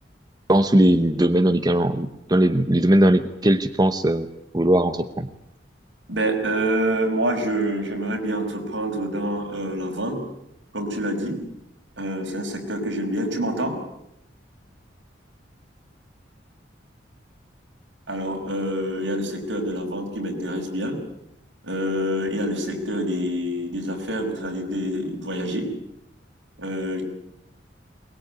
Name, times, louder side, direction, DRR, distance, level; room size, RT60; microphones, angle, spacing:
voice 1, 0.5-4.3 4.5-5.3, right 1 dB, 20° right, 9 dB, 0.9 m, -19 dB
voice 2, 6.1-10.2 10.7-11.4 12.0-13.8 18.1-21.0 21.6-25.7 26.6-27.0, right 1 dB, 75° right, 2 dB, 5.9 m, -26 dB
22.5 x 20.5 x 9.4 m, 0.80 s
head